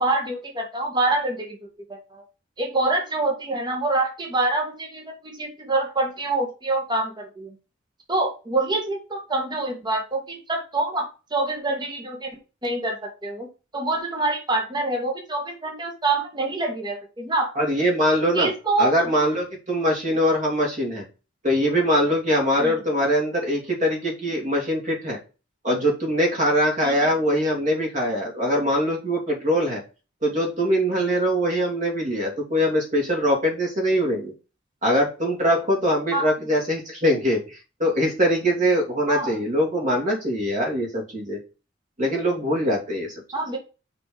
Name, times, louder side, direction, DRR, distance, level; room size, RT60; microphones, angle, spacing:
voice 1, 0.0-2.2 2.6-7.5 8.1-12.4 12.6-13.5 13.7-17.5 18.3-19.1 22.6-22.7 26.8-27.1 36.1-36.3 39.1-39.4 43.3-43.6, right 2 dB, 25° right, 2 dB, 1.8 m, -26 dB
voice 2, 17.5-18.5 18.8-21.0 21.4-25.2 25.6-29.8 30.2-34.3 34.8-41.4 42.0-43.2, equal, 40° right, 0 dB, 3.1 m, -22 dB
5.8 x 5.5 x 5.1 m, 0.31 s
head